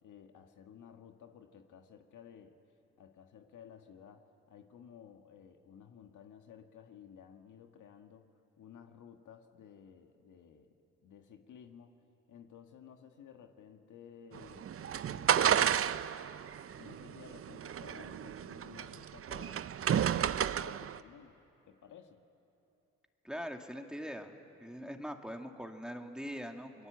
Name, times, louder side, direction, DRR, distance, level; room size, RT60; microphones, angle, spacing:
voice 1, 0.0-2.6 3.0-8.3 8.6-10.8 11.0-12.0 12.3-15.6 16.7-19.6 20.1-21.4 21.7-22.2, left 8 dB, 75° left, 5 dB, 1.7 m, -55 dB
sound 1, 14.3-21.0, right 9 dB, 45° right, 0.6 m, -32 dB
voice 2, 23.2-24.4 24.6-26.9, equal, 5° right, 4 dB, 2.2 m, -42 dB
30.0 x 21.5 x 8.1 m, 2.8 s
cardioid pair, 65°, 31 cm